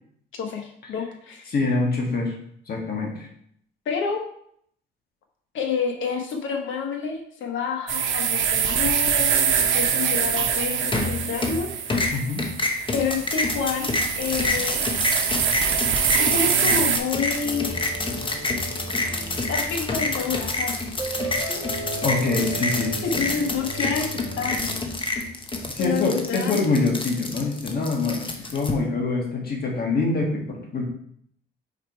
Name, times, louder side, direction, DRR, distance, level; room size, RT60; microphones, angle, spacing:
voice 1, 0.3-1.5 3.8-4.2 5.5-11.7 12.9-15.1 16.2-17.9 19.5-20.9 23.0-24.9 25.8-26.7, left 6 dB, 75° left, 3 dB, 1.2 m, -29 dB
voice 2, 1.5-2.4 2.7-3.3 12.1-12.4 22.0-23.3 25.7-30.8, left 3 dB, 50° left, 0 dB, 1.6 m, -25 dB
sound 1, 7.9-17.0, right 8 dB, 75° right, 0.8 m, -24 dB
sound 2, 10.9-11.6 11.9-28.7, left 2 dB, 25° left, 0.9 m, -27 dB
sound 3, 17.4-24.7, right 2 dB, 10° left, 1.5 m, -35 dB
4.9 x 4.6 x 4.6 m, 0.67 s
cardioid pair, 90°, 20 cm